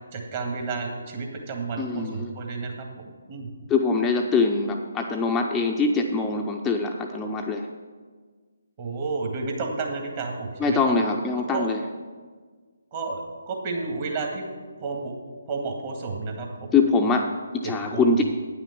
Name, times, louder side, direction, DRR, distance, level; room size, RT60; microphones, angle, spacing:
voice 1, 0.1-2.9 3.3-3.5 8.8-10.9 11.5-11.7 12.9-14.5 14.8-15.1 15.5-16.8 17.6-18.2, right 4 dB, 35° right, 1 dB, 1.8 m, -31 dB
voice 2, 1.8-2.3 3.7-7.7 10.6-11.8 16.7-18.2, left 4 dB, 10° left, 1 dB, 0.5 m, -23 dB
9.3 x 5.8 x 7.1 m, 1.5 s
figure-of-eight pair, 145°, 0 cm